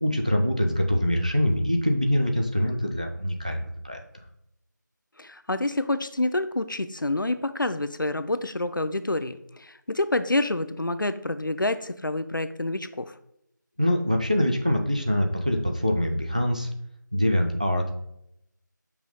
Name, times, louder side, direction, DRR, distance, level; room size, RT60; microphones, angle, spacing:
voice 1, 0.0-4.0 13.8-16.7 17.1-17.9, equal, 20° right, 4 dB, 0.4 m, -24 dB
voice 2, 5.2-13.1, left 2 dB, 80° left, 11 dB, 0.7 m, -28 dB
5.6 x 4.9 x 4.1 m, 0.77 s
figure-of-eight pair, 170°, 11 cm